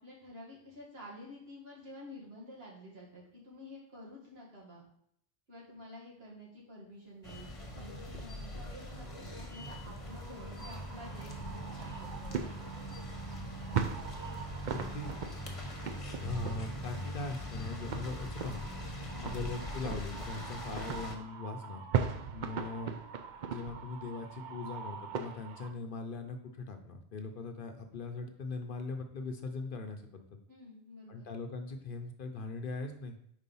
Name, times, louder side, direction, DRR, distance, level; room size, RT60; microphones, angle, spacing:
voice 1, 0.0-4.9 5.5-12.7 19.1-19.4 30.5-31.3, left 1 dB, 70° right, -4 dB, 2.2 m, -50 dB
sound 1, 7.2-21.2, equal, 35° left, 1.0 m, -42 dB
sound 2, 8.1-25.7, right 7 dB, 55° right, 0.6 m, -40 dB
voice 2, 14.7-15.1 16.2-18.6 19.2-21.9 22.3-23.0 23.5-30.3 31.1-33.2, left 3 dB, 60° left, 6 dB, 0.8 m, -40 dB
4.7 x 4.1 x 5.4 m, 0.68 s
omnidirectional pair, 1.1 m